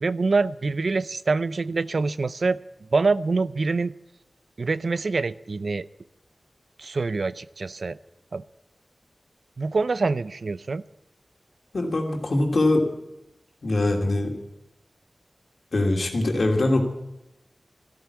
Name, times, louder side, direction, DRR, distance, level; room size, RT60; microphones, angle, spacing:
voice 1, 0.0-2.6 2.9-3.9 4.6-5.9 6.8-8.0 8.3-8.4 9.6-10.8, right 3 dB, 70° right, 16 dB, 0.5 m, -25 dB
voice 2, 11.7-12.9 13.6-14.3 15.7-16.8, left 2 dB, 70° left, 2 dB, 2.7 m, -22 dB
13.0 x 12.5 x 8.4 m, 0.90 s
cardioid pair, 40°, 0 cm